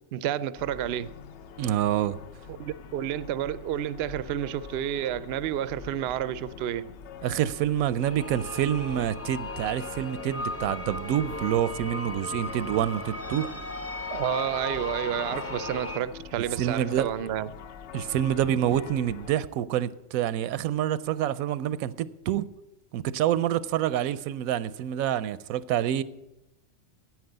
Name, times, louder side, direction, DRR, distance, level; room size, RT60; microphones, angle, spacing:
voice 1, 0.1-1.1 2.5-6.9 14.1-17.5, right 11 dB, 65° right, 0.6 m, -30 dB
sound 1, 0.6-19.3, left 6 dB, 65° left, 0.8 m, -44 dB
voice 2, 1.6-2.2 7.2-13.5 16.6-17.1 17.9-22.5 22.9-26.0, right 11 dB, 85° right, 1.0 m, -27 dB
sound 2, 8.0-16.0, left 2 dB, 15° left, 0.5 m, -36 dB
9.4 x 8.9 x 7.8 m
omnidirectional pair, 1.4 m